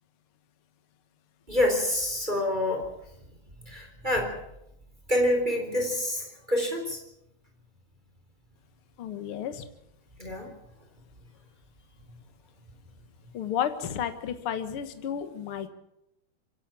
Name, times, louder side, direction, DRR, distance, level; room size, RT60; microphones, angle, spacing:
voice 1, 1.5-2.9 3.6-4.4 5.1-7.0 10.2-10.5, left 1 dB, 15° right, 2 dB, 3.9 m, -27 dB
voice 2, 9.0-9.6 13.3-15.7, left 9 dB, 50° left, 9 dB, 2.0 m, -32 dB
25.5 x 12.0 x 8.9 m, 0.84 s
omnidirectional pair, 3.6 m